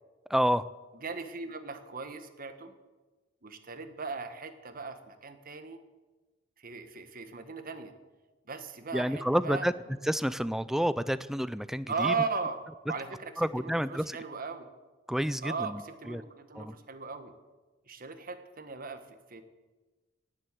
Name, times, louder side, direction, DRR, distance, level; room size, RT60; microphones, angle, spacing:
voice 1, 0.3-0.6 8.9-9.7 10.0-12.1 13.4-14.2 15.1-15.8 16.1-16.2 16.6-16.7, equal, ahead, 15 dB, 0.4 m, -29 dB
voice 2, 1.0-2.7 3.4-5.8 6.6-7.9 8.5-9.7 11.9-12.6 12.9-14.7 15.4-17.3 17.9-19.4, right 4 dB, 45° right, 9 dB, 1.4 m, -37 dB
18.0 x 7.7 x 8.4 m, 1.2 s
head